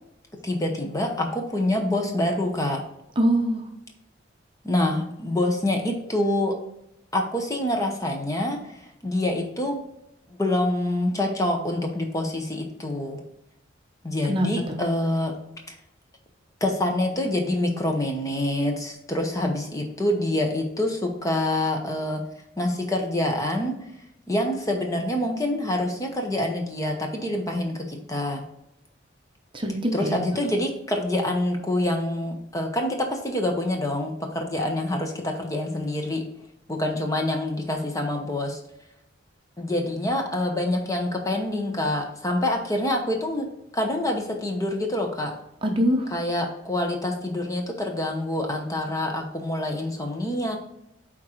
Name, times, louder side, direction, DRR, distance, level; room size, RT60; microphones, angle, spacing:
voice 1, 0.4-2.8 4.6-6.6 7.1-9.8 10.3-13.2 14.0-15.3 15.7-15.8 16.6-22.2 22.6-23.9 24.3-28.4 29.9-36.2 36.7-38.6 39.6-43.5 43.7-45.3 46.1-50.6, left 1 dB, 15° left, 2 dB, 0.9 m, -26 dB
voice 2, 3.2-3.6 14.3-14.8 29.5-30.2 45.6-46.1, equal, 25° right, 2 dB, 0.8 m, -23 dB
9.1 x 3.7 x 3.1 m, 0.81 s
head